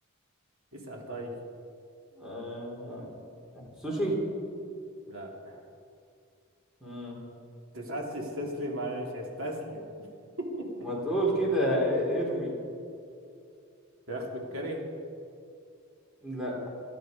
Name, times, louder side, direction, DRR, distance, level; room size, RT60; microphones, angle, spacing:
voice 1, 0.7-1.3 5.1-5.6 7.7-10.1 10.4-10.7 14.1-14.8, equal, 75° right, 0 dB, 3.0 m, -36 dB
voice 2, 2.2-3.1 3.8-4.2 6.8-7.2 10.8-12.5 16.2-16.6, equal, 5° right, -4 dB, 3.9 m, -29 dB
19.0 x 12.5 x 5.4 m, 2.5 s
head